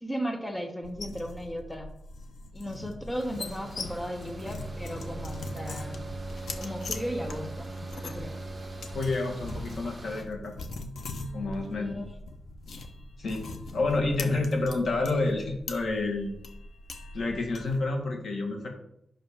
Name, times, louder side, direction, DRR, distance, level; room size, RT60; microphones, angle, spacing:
voice 1, 0.0-1.9 2.5-6.1 6.5-8.4 11.7-12.2 13.8-13.9, equal, 10° left, 4 dB, 0.9 m, -36 dB
sound 1, 0.8-17.8, left 2 dB, 90° left, 0.9 m, -41 dB
sound 2, 3.2-10.2, right 1 dB, 20° right, 1.6 m, -47 dB
Bowed string instrument, 4.2-9.3, right 2 dB, 40° right, 0.4 m, -40 dB
voice 2, 8.9-10.5 11.3-11.9 13.2-13.4 13.7-16.3 17.1-18.7, left 2 dB, 70° left, 2 dB, 2.0 m, -29 dB
5.8 x 5.5 x 6.9 m, 0.73 s
wide cardioid pair, 125°, 0 cm